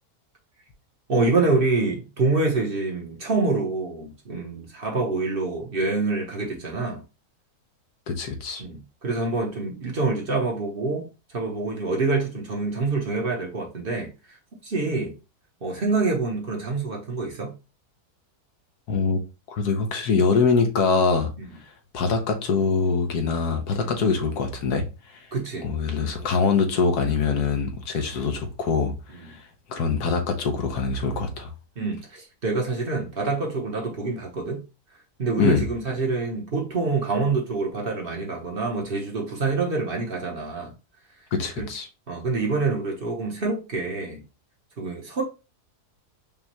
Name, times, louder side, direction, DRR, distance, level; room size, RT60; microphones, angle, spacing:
voice 1, 1.1-7.0 8.6-11.1 11.3-14.4 14.6-15.1 15.6-17.5 21.4-21.5 23.8-24.0 25.3-25.7 29.2-29.4 31.8-34.6 35.2-40.7 41.6-41.7 42.1-44.2 44.8-45.2, right 3 dB, 40° right, 1.1 m, -26 dB
voice 2, 8.1-8.6 18.9-19.2 19.5-21.3 21.9-24.9 25.6-28.9 29.7-31.5 35.4-35.6 41.3-41.9, left 5 dB, 80° left, 1.3 m, -23 dB
5.2 x 2.3 x 2.9 m
omnidirectional pair, 1.7 m